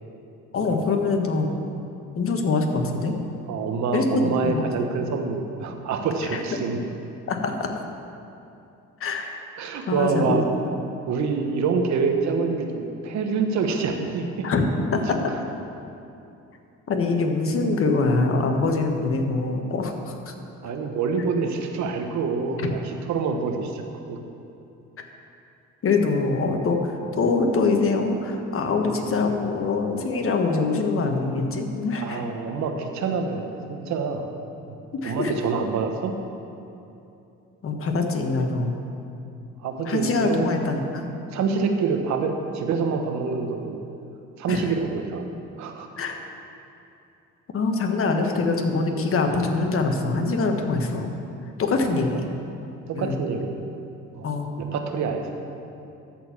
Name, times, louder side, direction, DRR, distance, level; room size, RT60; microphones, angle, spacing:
voice 1, 0.5-1.6 2.2-3.2 3.9-4.7 6.2-6.4 7.3-7.7 9.0-9.3 9.9-10.4 14.4-14.6 14.9-15.2 16.9-20.3 25.8-32.2 34.9-35.3 37.6-38.8 39.9-41.0 44.5-44.7 46.0-46.1 47.5-51.2 51.6-52.3 53.0-53.2 54.2-54.5, left 3 dB, 45° left, 3 dB, 1.4 m, -24 dB
voice 2, 3.5-6.8 9.6-10.4 11.1-14.5 20.6-23.8 24.1-24.2 32.0-34.2 35.0-36.1 39.6-40.6 41.3-43.8 44.4-45.2 45.6-45.9 51.9-52.0 52.9-53.6 54.1-54.3 54.6-55.3, right 5 dB, 65° right, 4 dB, 1.2 m, -26 dB
13.0 x 4.5 x 7.3 m, 2.7 s
cardioid pair, 85°, 30 cm